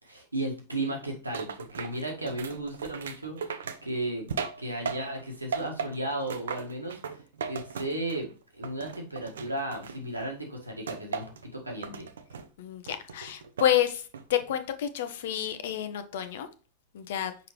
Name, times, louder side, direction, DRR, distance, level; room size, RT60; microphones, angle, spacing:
voice 1, 0.0-3.4 3.8-4.3 4.6-7.2 7.4-12.1, right 1 dB, 85° right, 1.6 m, -34 dB
sound 1, 1.3-5.2 5.5-8.3 8.6-10.3 10.9-11.5 11.8-12.5 12.9-13.8 14.1-14.6, right 6 dB, 65° right, 0.6 m, -37 dB
voice 2, 12.6-16.5 16.9-17.3, left 11 dB, 55° left, 0.8 m, -29 dB
6.0 x 5.1 x 3.1 m
figure-of-eight pair, 90°, 0 cm